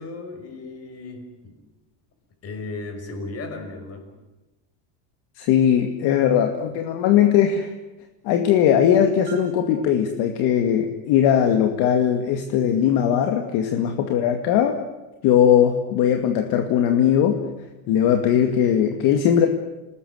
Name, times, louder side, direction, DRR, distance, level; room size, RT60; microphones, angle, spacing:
voice 1, 0.0-1.6 2.4-4.1, left 3 dB, 30° left, 5 dB, 6.0 m, -35 dB
voice 2, 5.4-7.7 8.2-14.7 15.2-17.4 17.9-19.5, left 9 dB, 50° left, 5 dB, 2.4 m, -19 dB
Marimba xylophone, 9.3-11.0, right 11 dB, 50° right, 5.3 m, -39 dB
29.0 x 19.5 x 9.6 m, 1.1 s
cardioid pair, 165°, 50 cm